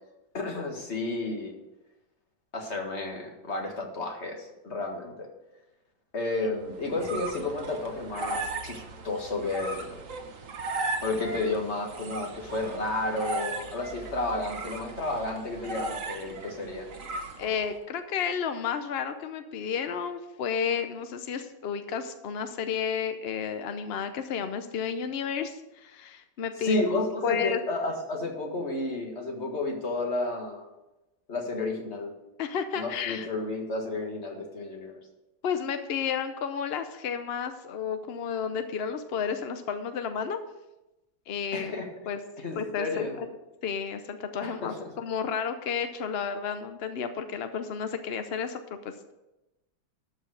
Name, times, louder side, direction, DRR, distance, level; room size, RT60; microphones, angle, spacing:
voice 1, 0.3-1.5 2.5-5.3 6.1-10.0 11.0-16.9 26.6-30.7 31.3-32.1 32.8-35.0 41.5-41.9 42.4-43.2 44.4-44.9, left 2 dB, 40° left, 2 dB, 1.9 m, -32 dB
sound 1, 6.6-17.8, right 2 dB, 50° right, 1.3 m, -37 dB
voice 2, 17.4-27.6 32.4-33.3 35.4-40.4 41.3-41.7 42.1-42.2 42.6-43.3 43.6-49.1, left 7 dB, 65° left, 9 dB, 0.6 m, -32 dB
12.5 x 5.1 x 6.4 m, 0.97 s
omnidirectional pair, 1.8 m